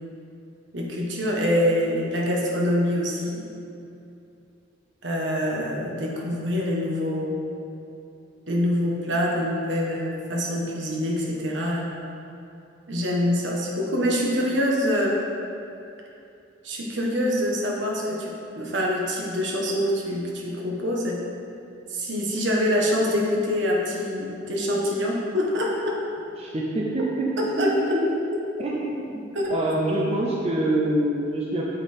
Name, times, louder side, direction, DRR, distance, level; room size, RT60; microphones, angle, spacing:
voice 1, 0.7-3.4 5.0-7.4 8.5-11.9 12.9-15.2 16.6-21.2 21.9-26.0 27.6-28.0 29.3-29.5, equal, 70° right, -2 dB, 1.4 m, -25 dB
voice 2, 26.4-28.1 28.6-31.6, right 1 dB, 30° right, -4 dB, 0.7 m, -26 dB
8.1 x 5.6 x 4.4 m, 2.7 s
head